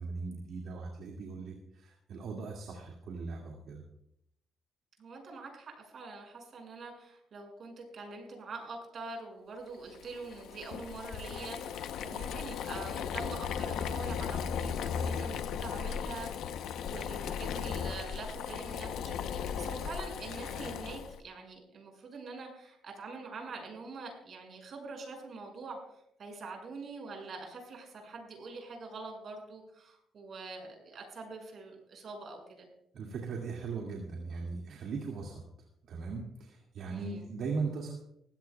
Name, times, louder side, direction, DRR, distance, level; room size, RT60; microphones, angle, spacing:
voice 1, 0.0-3.8 32.9-35.4 35.8-38.0, right 4 dB, 70° right, 0 dB, 2.3 m, -39 dB
voice 2, 5.0-16.3 16.6-32.7 36.9-37.2, right 3 dB, 55° right, 2 dB, 6.1 m, -45 dB
Boiling, 9.9-21.2, left 7 dB, 80° left, 0.8 m, -36 dB
20.0 x 16.0 x 2.3 m, 0.77 s
cardioid pair, 90°, 0 cm